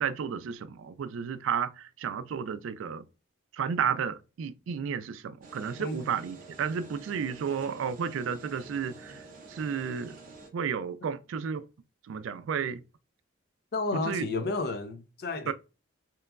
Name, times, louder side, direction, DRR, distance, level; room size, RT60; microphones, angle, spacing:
voice 1, 0.0-3.0 3.5-9.2 9.5-10.2 10.5-11.6 12.1-12.8 13.9-14.2 15.5-15.6, right 7 dB, 90° right, 0.3 m, -32 dB
sound 1, 5.4-10.5, right 3 dB, 45° right, 0.6 m, -49 dB
voice 2, 13.7-15.5, left 3 dB, 55° left, 0.4 m, -32 dB
2.9 x 2.2 x 2.2 m
head